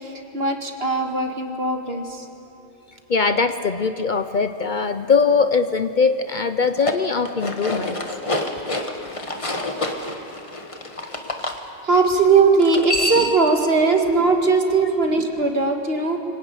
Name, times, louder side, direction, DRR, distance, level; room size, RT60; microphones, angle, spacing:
voice 1, 0.0-2.3 11.8-16.2, right 4 dB, 60° right, 3 dB, 2.2 m, -19 dB
voice 2, 3.1-8.0, left 5 dB, 50° left, 10 dB, 0.8 m, -21 dB
sound 1, 6.6-11.6 12.6-13.5, left 1 dB, 30° left, 1.5 m, -27 dB
24.5 x 18.0 x 9.1 m, 2.9 s
omnidirectional pair, 1.2 m